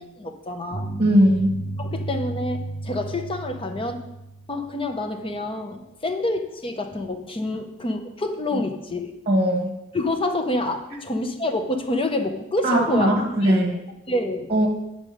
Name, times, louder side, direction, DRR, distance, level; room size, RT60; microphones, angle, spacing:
voice 1, 0.0-0.9 1.8-4.0 4.5-9.1 9.9-13.1 13.4-13.6 14.1-14.5, left 1 dB, 25° left, 6 dB, 0.8 m, -27 dB
sound 1, 0.7-4.9, right 2 dB, 45° left, 2.4 m, -33 dB
voice 2, 1.0-1.5 9.3-9.7 12.6-13.7 14.5-14.7, equal, 30° right, 1 dB, 1.2 m, -19 dB
9.6 x 5.3 x 5.0 m, 0.91 s
head